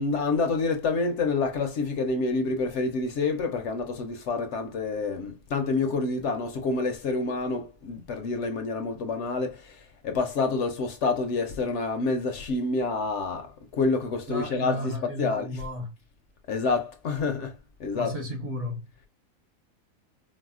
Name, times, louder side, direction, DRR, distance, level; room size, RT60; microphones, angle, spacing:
voice 1, 0.0-9.7 10.0-15.6 16.5-17.5 17.8-18.1, left 3 dB, 65° left, 0.8 m, -28 dB
voice 2, 14.3-15.9 17.9-18.8, equal, 60° right, 1.5 m, -33 dB
4.7 x 2.0 x 2.4 m
omnidirectional pair, 1.4 m